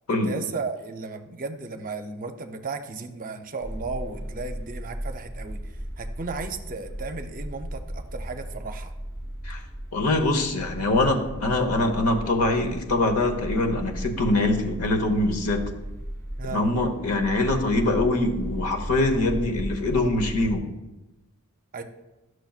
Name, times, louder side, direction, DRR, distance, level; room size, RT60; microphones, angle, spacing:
voice 1, 0.1-8.9 16.4-16.6 21.7-21.8, right 4 dB, 40° right, 6 dB, 0.6 m, -35 dB
sound 1, 3.6-20.6, equal, 15° left, 0.9 m, -36 dB
voice 2, 9.9-15.6 16.5-20.7, left 2 dB, 90° left, 5 dB, 1.0 m, -23 dB
11.5 x 6.3 x 2.4 m, 1.0 s
head